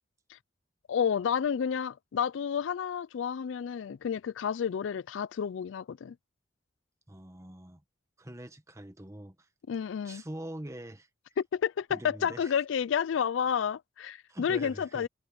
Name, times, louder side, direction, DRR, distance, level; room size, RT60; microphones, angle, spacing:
voice 1, 0.9-6.1 9.7-10.2 11.4-15.1, left 7 dB, 75° left, 0.4 m, -30 dB
voice 2, 7.1-7.8 8.2-9.3 10.0-11.1 11.9-12.5 14.3-15.1, right 1 dB, 15° right, 1.5 m, -43 dB
head